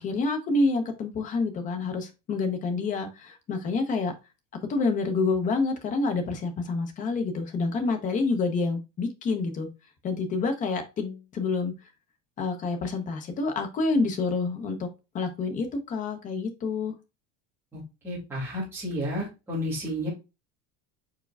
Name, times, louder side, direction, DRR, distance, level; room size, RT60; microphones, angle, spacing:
voice 1, 0.0-4.1 4.7-9.7 10.0-11.7 12.4-14.9 15.1-16.9, left 3 dB, 25° left, 6 dB, 0.7 m, -28 dB
voice 2, 17.7-20.1, equal, 5° right, -9 dB, 2.2 m, -32 dB
4.7 x 4.4 x 2.2 m, 0.26 s
cardioid pair, 175°, 35 cm